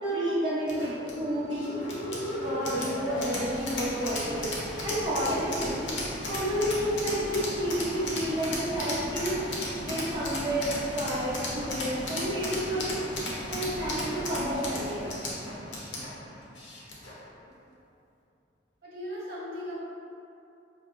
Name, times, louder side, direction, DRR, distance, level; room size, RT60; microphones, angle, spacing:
voice 1, 0.0-1.7 2.4-4.6 4.8-5.9 6.3-9.4 9.8-13.0 13.5-15.2, equal, 25° right, -10 dB, 0.7 m, -30 dB
sound 1, 0.7-17.2, left 1 dB, 75° left, 0.8 m, -35 dB
voice 2, 18.8-19.8, equal, 55° right, -8 dB, 1.2 m, -39 dB
5.1 x 2.1 x 2.5 m, 2.6 s
head